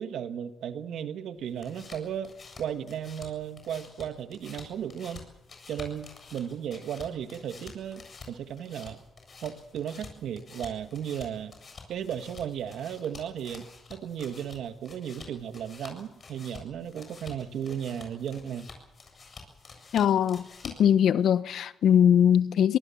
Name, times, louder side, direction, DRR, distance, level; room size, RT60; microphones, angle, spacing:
voice 1, 0.0-5.2 5.7-9.0 9.4-11.5 11.9-18.7, right 9 dB, 75° right, 1.7 m, -35 dB
sound 1, 1.4-21.0, left 4 dB, 40° left, 7.6 m, -49 dB
voice 2, 19.9-22.8, left 9 dB, 70° left, 1.1 m, -21 dB
24.5 x 19.5 x 7.2 m
cardioid pair, 90°, 0 cm